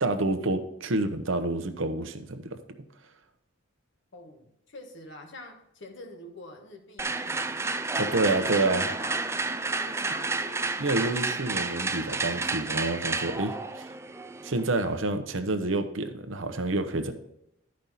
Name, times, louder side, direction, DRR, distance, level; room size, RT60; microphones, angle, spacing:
voice 1, 0.0-2.6 8.0-8.9 10.8-13.9 14.4-17.1, right 2 dB, 75° right, 8 dB, 0.9 m, -28 dB
voice 2, 4.1-7.4 8.0-8.6 8.9-9.4 9.8-10.8, left 1 dB, 65° left, 4 dB, 1.4 m, -46 dB
sound 1, 7.0-14.9, right 3 dB, 15° right, 0.4 m, -31 dB
12.0 x 5.2 x 4.2 m, 0.79 s
head